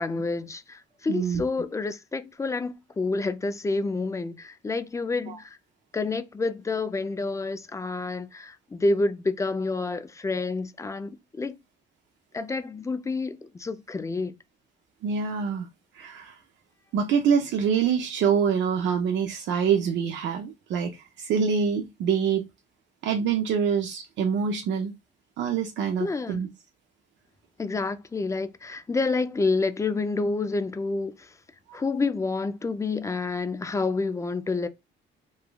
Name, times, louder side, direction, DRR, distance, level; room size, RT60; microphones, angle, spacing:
voice 1, 0.0-5.6 5.9-11.6 12.3-14.3 26.0-26.5 27.6-31.4 31.7-34.7, left 3 dB, 15° left, 0.3 m, -28 dB
voice 2, 1.1-1.4 5.3-5.4 15.0-15.7 15.9-16.4 16.9-22.4 23.0-24.9 25.4-26.5 31.7-31.8, right 7 dB, 70° right, 0.4 m, -25 dB
3.1 x 2.2 x 2.2 m
cardioid pair, 90°, 20 cm